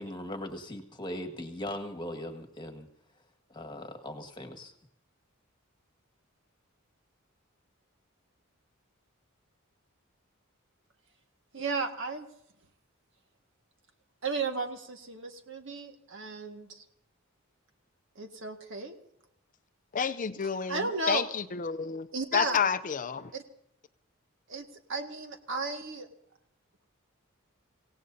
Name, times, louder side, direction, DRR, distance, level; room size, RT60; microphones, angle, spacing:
voice 1, 0.0-2.9 3.5-4.7, left 1 dB, 20° left, 5 dB, 1.8 m, -39 dB
voice 2, 11.5-12.3 14.2-16.8 18.2-19.0 20.7-21.2 22.1-22.7 23.3-23.4 24.5-26.1, right 3 dB, 65° right, 5 dB, 1.8 m, -34 dB
voice 3, 19.9-22.1 22.3-23.3, left 6 dB, 40° left, 11 dB, 0.5 m, -30 dB
26.0 x 17.0 x 2.7 m, 0.75 s
head